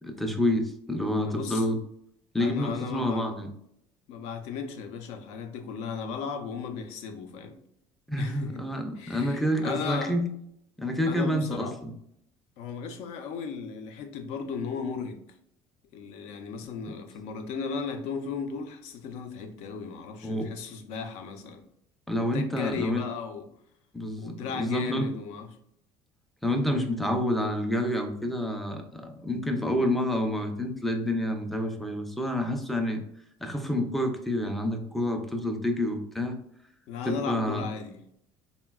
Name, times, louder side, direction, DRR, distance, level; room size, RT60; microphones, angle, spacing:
voice 1, 0.0-1.8 2.3-3.5 8.1-10.3 10.8-11.9 20.2-20.5 22.1-23.0 23.9-25.1 26.4-33.0 33.4-36.4 37.1-37.6, left 1 dB, ahead, 4 dB, 0.3 m, -28 dB
voice 2, 1.2-1.7 2.4-3.3 4.1-7.6 8.2-8.6 9.0-10.1 11.1-11.7 12.6-15.4 15.9-21.6 22.3-23.5 24.2-25.5 26.6-26.9 36.9-38.0, left 5 dB, 70° left, 7 dB, 0.5 m, -36 dB
3.8 x 2.1 x 2.2 m, 0.71 s
cardioid pair, 140°, 12 cm